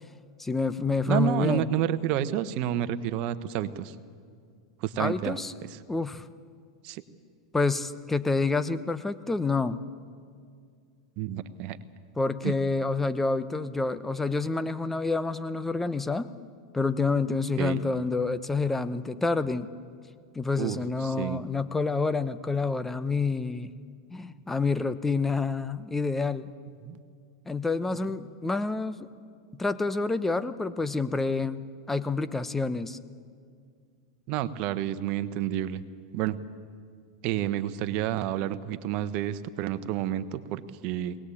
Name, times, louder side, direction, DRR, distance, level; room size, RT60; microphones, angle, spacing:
voice 1, 0.4-1.7 5.0-5.5 5.9-6.2 7.5-9.8 12.2-16.3 16.7-19.7 20.3-23.7 24.1-26.5 27.5-29.1 29.6-33.0, left 3 dB, 10° left, 13 dB, 0.9 m, -28 dB
voice 2, 1.1-3.9 4.8-5.4 6.8-7.0 11.2-11.8 12.4-12.5 17.6-17.8 20.6-21.4 26.8-27.0 34.3-35.8 36.1-36.4 37.2-41.2, right 12 dB, 50° right, 12 dB, 1.1 m, -30 dB
21.5 x 19.0 x 8.6 m, 2.1 s
hypercardioid pair, 110°, 2 cm